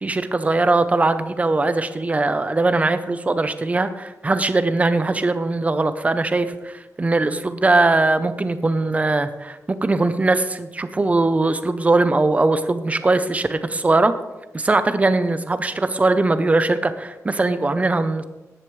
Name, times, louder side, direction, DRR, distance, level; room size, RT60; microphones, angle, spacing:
voice 1, 0.0-14.1 14.5-18.2, right 2 dB, 25° right, 11 dB, 0.7 m, -20 dB
15.5 x 11.0 x 3.2 m, 1.1 s
wide cardioid pair, 170°, 6 cm